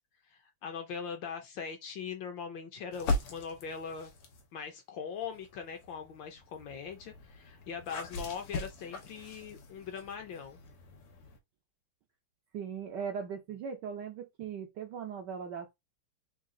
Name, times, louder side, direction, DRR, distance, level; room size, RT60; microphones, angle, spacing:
voice 1, 0.6-4.1 4.5-10.6, left 6 dB, 70° left, 1.3 m, -41 dB
sound 1, 2.9-4.5 5.2-11.4, left 2 dB, 90° left, 1.9 m, -40 dB
voice 2, 12.5-15.7, right 7 dB, 70° right, 1.0 m, -39 dB
3.9 x 2.4 x 3.6 m
omnidirectional pair, 2.4 m